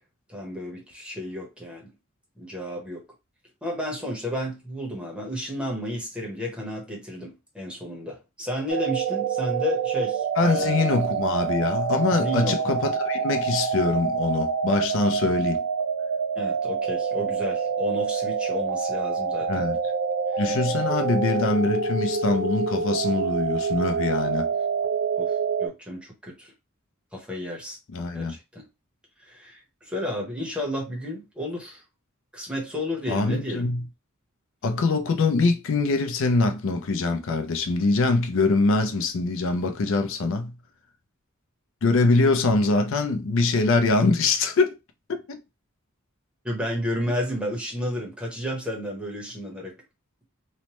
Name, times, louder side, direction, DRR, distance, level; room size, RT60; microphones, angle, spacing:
voice 1, 0.3-1.9 2.4-3.0 3.6-10.9 12.1-12.8 16.4-19.7 25.2-25.3 25.6-26.5 27.1-27.8 28.1-28.6 29.3-31.8 32.3-33.7 46.4-49.7, left 1 dB, 5° right, 0.8 m, -32 dB
sound 1, 8.7-25.7, right 5 dB, 70° right, 0.5 m, -26 dB
voice 2, 10.4-15.6 19.5-19.8 20.4-24.5 27.9-28.4 33.1-33.8 34.6-40.5 41.8-44.7 45.1-45.4, left 3 dB, 65° left, 0.5 m, -23 dB
3.1 x 2.1 x 2.9 m
head